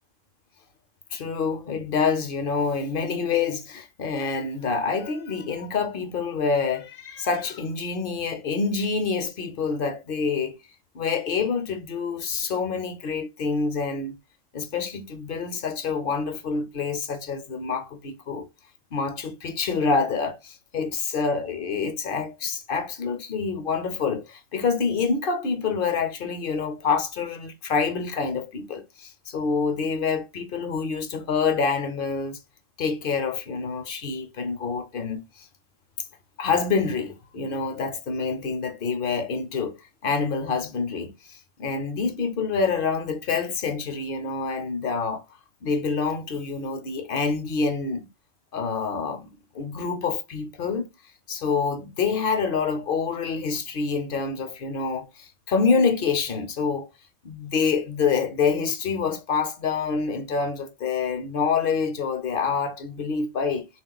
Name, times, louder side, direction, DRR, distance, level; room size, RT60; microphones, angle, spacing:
voice 1, 1.1-10.5 10.9-14.2 14.5-18.5 18.9-32.4 32.8-35.5 36.4-39.8 40.0-45.2 45.6-48.1 48.5-49.3 49.5-50.9 51.3-56.9 57.2-63.7, left 5 dB, 60° left, 0.8 m, -27 dB
3.7 x 2.4 x 3.7 m
omnidirectional pair, 1.1 m